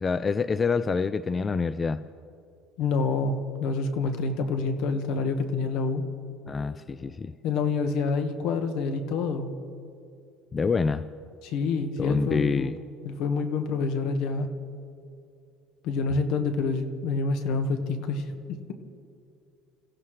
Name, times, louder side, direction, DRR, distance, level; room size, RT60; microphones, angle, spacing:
voice 1, 0.0-2.0 6.5-7.3 10.5-11.1 12.0-12.7, left 5 dB, 20° left, 14 dB, 0.3 m, -26 dB
voice 2, 2.8-6.0 7.4-9.5 11.4-12.7 13.0-14.5 15.8-18.7, left 4 dB, 65° left, 7 dB, 1.4 m, -27 dB
28.0 x 15.5 x 3.2 m, 2.4 s
cardioid pair, 145°, 0 cm